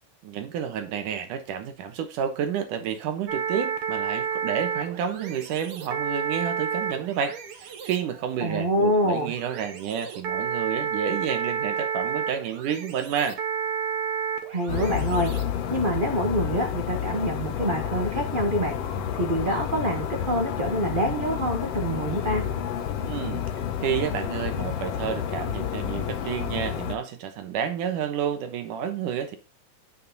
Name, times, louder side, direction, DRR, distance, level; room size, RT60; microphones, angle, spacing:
voice 1, 0.2-13.4 23.1-23.5 23.8-29.4, right 8 dB, 75° right, 2.6 m, -30 dB
sound 1, 3.3-16.1, right 7 dB, 55° right, 1.7 m, -31 dB
voice 2, 8.4-9.3 14.5-15.3 15.7-18.8 19.1-22.4, equal, 35° right, 0.7 m, -26 dB
sound 2, 14.7-27.0, left 9 dB, 60° left, 1.8 m, -30 dB
9.4 x 7.3 x 4.0 m
omnidirectional pair, 3.9 m